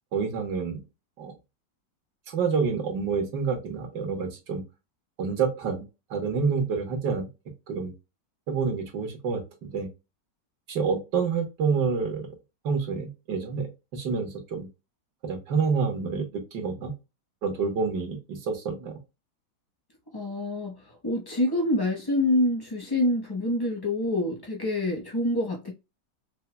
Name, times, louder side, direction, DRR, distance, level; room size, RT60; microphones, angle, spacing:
voice 1, 0.1-0.8 1.2-1.3 2.3-4.6 5.2-5.8 6.1-7.3 7.7-7.9 8.5-9.9 10.7-12.3 12.6-14.7 15.2-16.9 17.4-19.0, right 5 dB, 70° right, 1.7 m, -28 dB
voice 2, 20.1-25.7, left 1 dB, 25° left, 0.5 m, -26 dB
5.4 x 2.2 x 2.2 m
omnidirectional pair, 1.9 m